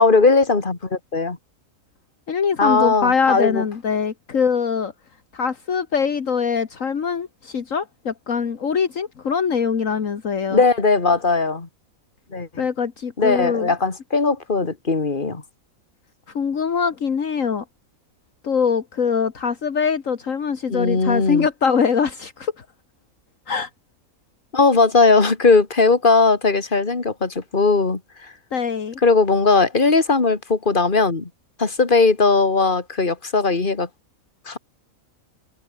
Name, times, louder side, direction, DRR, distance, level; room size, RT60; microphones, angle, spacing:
voice 1, 0.0-1.4 2.6-3.6 10.5-11.7 12.3-12.6 13.2-15.4 20.7-21.5 24.5-28.3 29.0-31.3 31.6-33.9 34.5-34.6, left 4 dB, 35° left, 2.6 m, -18 dB
voice 2, 2.3-4.9 5.3-10.6 12.6-13.7 16.3-17.6 18.4-22.7 23.5-23.7 28.5-29.0, left 6 dB, 65° left, 1.9 m, -23 dB
omnidirectional pair, 1.5 m